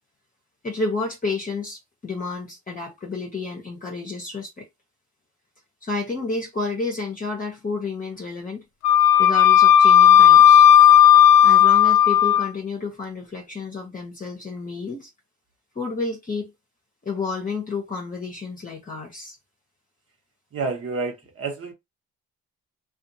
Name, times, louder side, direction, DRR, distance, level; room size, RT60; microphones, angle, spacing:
voice 1, 0.6-4.7 5.8-8.6 9.2-10.6 11.4-15.1 15.7-16.5 17.0-19.4, left 3 dB, 25° left, 0.9 m, -30 dB
Wind instrument woodwind instrument, 8.8-12.5, left 10 dB, 60° left, 0.5 m, -13 dB
voice 2, 20.5-21.7, right 4 dB, 50° right, 1.1 m, -29 dB
2.5 x 2.4 x 2.7 m
cardioid pair, 90°, 30 cm